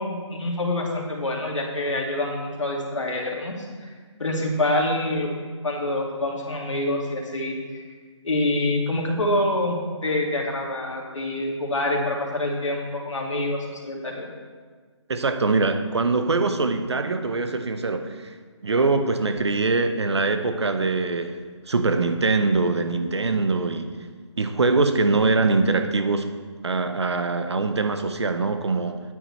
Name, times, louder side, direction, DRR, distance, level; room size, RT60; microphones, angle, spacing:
voice 1, 0.0-3.5 3.8-3.9 4.2-5.3 5.6-7.8 8.2-14.3, left 1 dB, 80° left, -1 dB, 2.2 m, -26 dB
voice 2, 15.1-18.3 18.6-21.4 21.7-24.0 24.4-26.3 26.6-29.0, right 3 dB, 60° right, 8 dB, 0.8 m, -23 dB
9.2 x 9.1 x 3.2 m, 1.5 s
hypercardioid pair, 175°, 16 cm